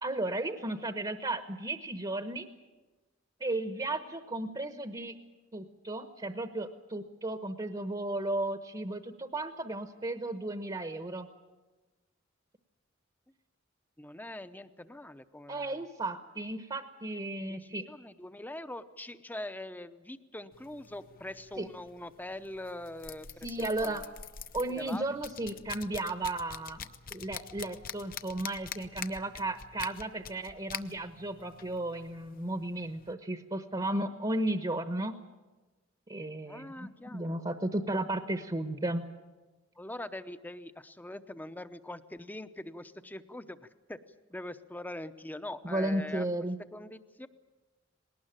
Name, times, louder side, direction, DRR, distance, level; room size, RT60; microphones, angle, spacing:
voice 1, 0.0-2.5 3.4-5.1 5.5-11.3 15.5-17.8 21.6-21.7 23.4-24.0 24.5-35.1 36.1-39.0 45.6-46.6, right 2 dB, 25° right, 8 dB, 1.0 m, -34 dB
voice 2, 14.0-15.8 17.5-24.1 24.7-25.0 36.5-37.4 39.8-44.0 44.3-46.3 46.7-47.3, left 1 dB, 10° left, 11 dB, 0.8 m, -43 dB
sound 1, 20.5-33.1, left 8 dB, 45° left, 0.8 m, -46 dB
20.5 x 18.5 x 9.0 m, 1.2 s
head